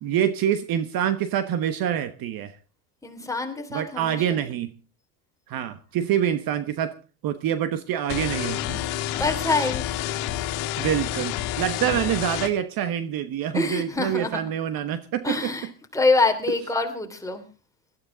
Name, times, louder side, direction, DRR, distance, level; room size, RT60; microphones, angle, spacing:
voice 1, 0.0-2.5 3.7-4.7 5.5-6.9 7.2-8.8 10.8-15.7, right 10 dB, 45° right, 12 dB, 1.2 m, -26 dB
voice 2, 3.0-4.4 9.2-9.9 13.5-14.4 15.2-17.4, left 3 dB, 5° left, 4 dB, 3.1 m, -25 dB
sound 1, 8.1-12.5, left 13 dB, 70° left, 1.9 m, -29 dB
18.5 x 13.0 x 3.9 m, 0.34 s
supercardioid pair, 110°, 47 cm